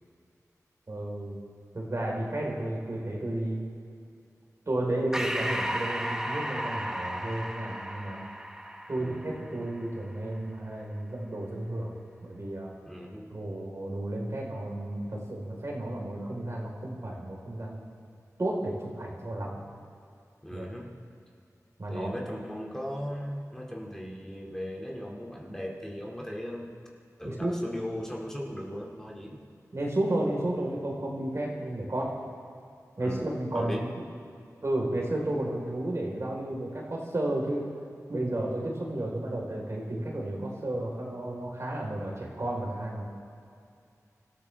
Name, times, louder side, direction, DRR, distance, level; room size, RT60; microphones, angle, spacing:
voice 1, 0.9-1.4 1.7-3.6 4.7-8.2 8.9-11.9 12.2-12.7 13.3-17.9 18.4-19.6 20.5-20.7 21.8-22.1 27.2-27.5 29.7-32.2 33.0-33.9 34.6-37.6 38.1-43.0, right 1 dB, 55° right, -2 dB, 4.0 m, -32 dB
Breathing, 5.1-10.0, equal, 10° right, 1.1 m, -34 dB
voice 2, 12.9-13.4 20.4-21.0 21.9-26.7 27.2-29.4 33.0-33.9, equal, 10° left, -2 dB, 2.3 m, -37 dB
27.0 x 13.5 x 3.4 m, 2.5 s
wide cardioid pair, 60°, 6 cm